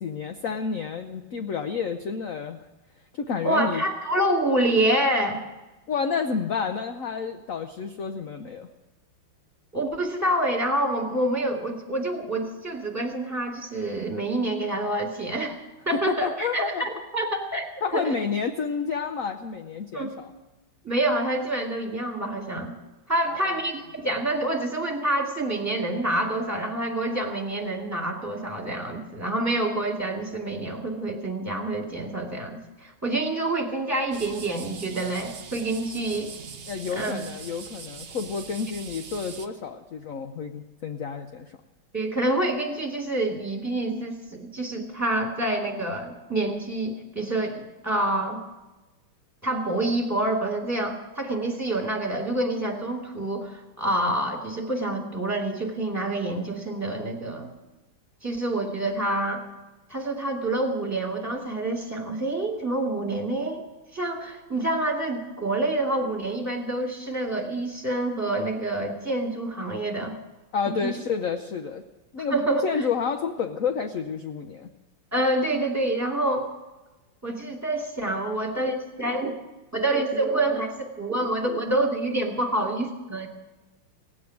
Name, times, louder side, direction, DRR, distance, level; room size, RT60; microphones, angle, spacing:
voice 1, 0.0-2.6 3.1-3.8 5.9-8.7 15.9-16.8 17.8-20.3 23.3-23.6 36.7-41.5 70.5-71.8 72.1-72.4 72.6-74.7, left 6 dB, 65° left, 6 dB, 0.8 m, -30 dB
voice 2, 3.4-5.4 9.7-15.6 15.9-18.1 19.9-20.1 20.8-22.7 23.1-36.4 36.9-37.2 41.9-48.4 49.4-57.5 58.2-59.4 59.9-63.6 63.9-70.2 70.7-70.9 72.3-72.6 75.1-76.5 77.2-79.3 79.7-83.3, right 1 dB, 5° right, -1 dB, 2.2 m, -27 dB
sound 1, 34.1-39.5, right 6 dB, 70° right, 0.5 m, -42 dB
17.5 x 8.6 x 9.5 m, 1.1 s
omnidirectional pair, 2.4 m